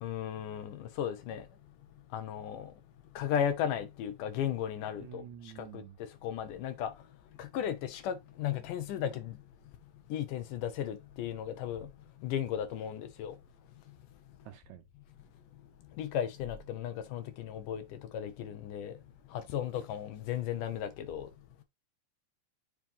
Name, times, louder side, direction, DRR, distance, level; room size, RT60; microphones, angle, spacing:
voice 1, 0.0-1.4 2.1-2.7 3.2-5.2 5.6-5.8 6.2-6.9 7.4-9.3 10.1-11.9 12.2-13.4 16.0-17.8 18.1-18.9 19.5-21.3, left 9 dB, 75° left, 2.4 m, -35 dB
voice 2, 5.0-6.0 14.5-14.8, right 12 dB, 80° right, 1.8 m, -48 dB
7.3 x 3.0 x 5.4 m
omnidirectional pair, 3.9 m